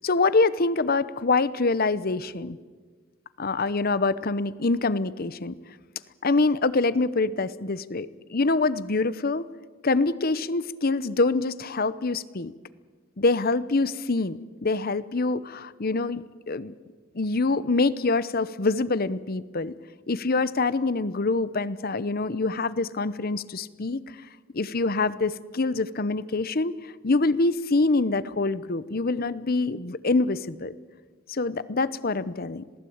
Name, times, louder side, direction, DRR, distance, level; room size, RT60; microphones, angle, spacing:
voice 1, 0.0-2.6 3.4-5.6 6.2-9.4 9.8-12.5 13.2-16.7 17.1-19.7 20.1-24.0 24.5-26.7 27.0-30.7 31.3-32.6, left 3 dB, 45° left, 16 dB, 0.8 m, -25 dB
26.5 x 18.5 x 8.7 m, 1.5 s
head